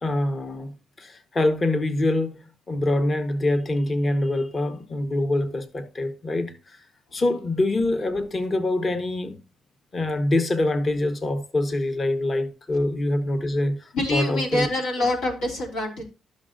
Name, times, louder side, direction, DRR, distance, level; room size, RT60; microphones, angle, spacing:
voice 1, 0.0-6.8 7.1-9.4 9.9-14.7, left 2 dB, 35° left, 1.1 m, -25 dB
voice 2, 13.9-16.1, left 1 dB, 85° left, 2.9 m, -25 dB
12.5 x 6.4 x 2.5 m
cardioid pair, 90°, 0 cm